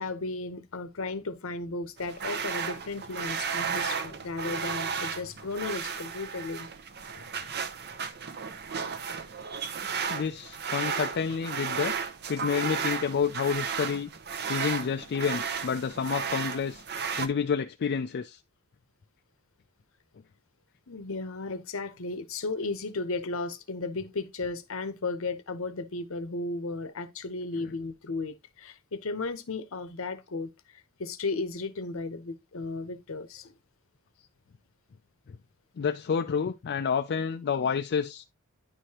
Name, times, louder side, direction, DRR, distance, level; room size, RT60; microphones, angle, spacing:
voice 1, 0.0-6.7 20.9-33.5, left 3 dB, 65° left, 0.8 m, -35 dB
sound 1, 2.0-17.3, right 6 dB, 50° right, 0.7 m, -34 dB
voice 2, 10.1-11.9 12.3-14.1 14.5-16.8 17.2-18.4 27.5-27.8 35.3-35.4 35.8-38.2, left 6 dB, 50° left, 0.4 m, -29 dB
10.0 x 4.8 x 2.9 m
head